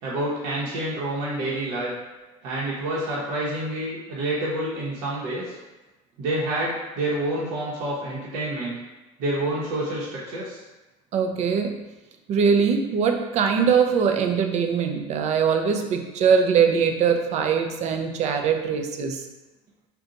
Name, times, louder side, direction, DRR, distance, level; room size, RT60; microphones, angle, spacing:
voice 1, 0.0-1.9 2.4-5.6 6.2-8.7 9.2-10.6, right 1 dB, 70° right, -6 dB, 0.9 m, -28 dB
voice 2, 11.1-11.7 12.3-19.2, right 6 dB, 45° right, 5 dB, 0.4 m, -22 dB
2.5 x 2.3 x 3.9 m, 1.1 s
supercardioid pair, 95°, 16 cm